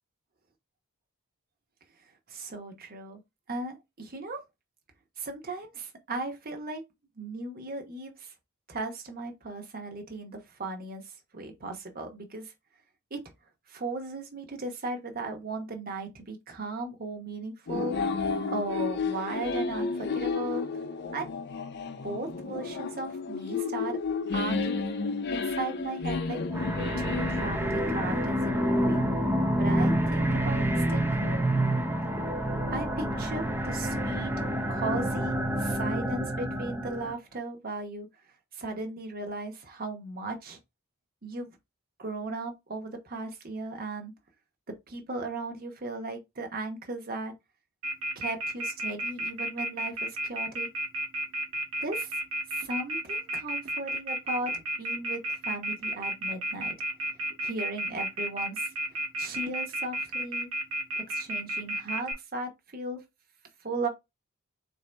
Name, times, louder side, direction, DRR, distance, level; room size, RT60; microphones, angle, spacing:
voice 1, 2.3-3.2 3.5-4.4 5.2-6.8 7.2-8.3 8.7-11.0 11.3-12.5 13.1-13.2 13.7-18.0 18.5-20.7 21.1-21.3 22.0-24.0 24.3-25.0 25.3-26.4 27.0-29.0 29.6-30.6 30.9-31.6 32.7-38.1 38.5-40.6 41.2-41.5 42.0-44.1 44.9-47.3 48.1-50.7 51.8-52.1 52.5-54.5 54.8-56.7 57.4-58.7 59.2-60.5 61.1-63.0 63.6-63.9, right 2 dB, 45° right, 1.0 m, -36 dB
sound 1, 17.7-28.3, left 4 dB, 50° left, 0.5 m, -32 dB
sound 2, 26.5-37.1, right 1 dB, 10° right, 0.6 m, -28 dB
Telephone, 47.8-62.1, right 1 dB, 75° right, 1.3 m, -31 dB
4.0 x 2.7 x 3.3 m
head